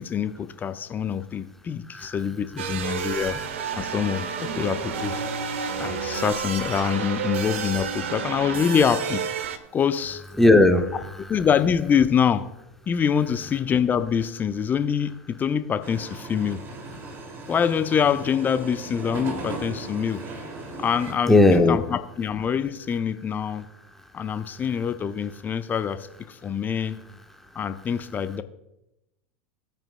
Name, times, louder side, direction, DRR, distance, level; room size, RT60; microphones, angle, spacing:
voice 1, 0.0-3.4 3.8-5.2 5.8-9.2 9.7-10.2 11.3-12.5 12.9-16.6 17.5-20.2 20.8-23.7 24.1-27.0 27.6-28.4, left 7 dB, 25° left, 11 dB, 0.7 m, -25 dB
sound 1, 2.6-9.6, right 6 dB, 70° right, 1.1 m, -30 dB
voice 2, 10.4-11.2 21.3-21.8, left 2 dB, 5° left, 5 dB, 1.2 m, -17 dB
sound 2, 15.8-21.1, right 3 dB, 35° right, 2.4 m, -37 dB
18.0 x 8.8 x 2.2 m, 0.87 s
figure-of-eight pair, 85°, 7 cm